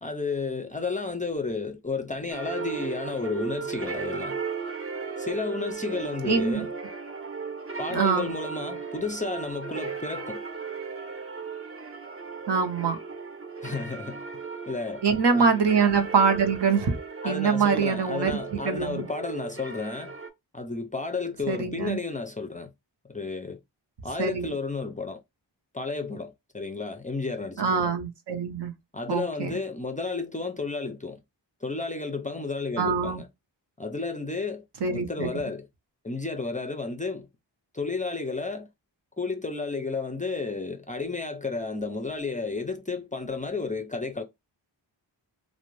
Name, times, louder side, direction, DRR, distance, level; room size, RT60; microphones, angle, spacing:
voice 1, 0.0-4.4 5.2-6.7 7.8-10.4 13.6-14.2 14.7-15.0 15.3-15.5 17.2-20.1 20.5-22.7 23.1-23.6 24.0-25.2 25.7-27.9 28.9-31.2 31.6-33.3 33.8-35.7 36.0-37.3 37.7-38.7 39.2-44.2, left 3 dB, 20° left, 0.4 m, -32 dB
sound 1, 2.3-20.3, right 5 dB, 30° right, 0.7 m, -36 dB
voice 2, 6.2-6.7 7.9-8.3 12.5-13.0 15.0-16.9 17.2-19.0 21.5-22.0 24.2-24.5 27.6-28.7 29.1-29.6 32.8-33.2 34.8-35.3, right 5 dB, 65° right, 0.7 m, -24 dB
2.5 x 2.1 x 3.0 m
wide cardioid pair, 60°, 45 cm